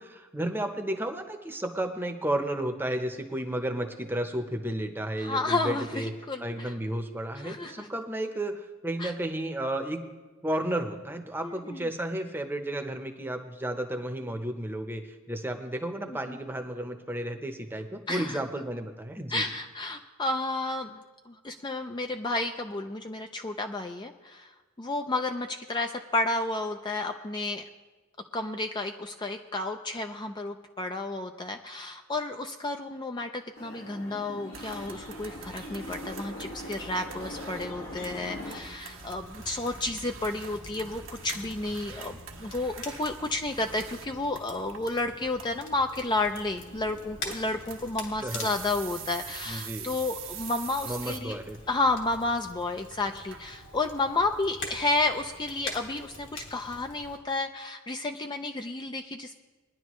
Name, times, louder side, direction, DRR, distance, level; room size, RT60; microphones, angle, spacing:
voice 1, 0.0-6.1 6.4-10.1 10.4-15.0 15.3-19.5 48.2-48.5 49.5-49.9 50.8-51.6, right 1 dB, 10° right, 5 dB, 0.9 m, -32 dB
voice 2, 5.2-6.7 7.4-7.9 9.0-9.1 11.4-11.9 16.1-16.4 18.1-18.5 19.3-24.5 24.8-27.6 28.3-51.4 51.7-59.4, left 2 dB, 20° left, 5 dB, 0.5 m, -31 dB
sound 1, 33.5-38.6, left 1 dB, 80° left, 1.8 m, -41 dB
sound 2, 34.5-53.8, right 7 dB, 70° right, 1.3 m, -45 dB
Crackle, 38.9-57.2, left 3 dB, 65° left, 2.6 m, -45 dB
21.0 x 10.5 x 3.1 m, 1.3 s
head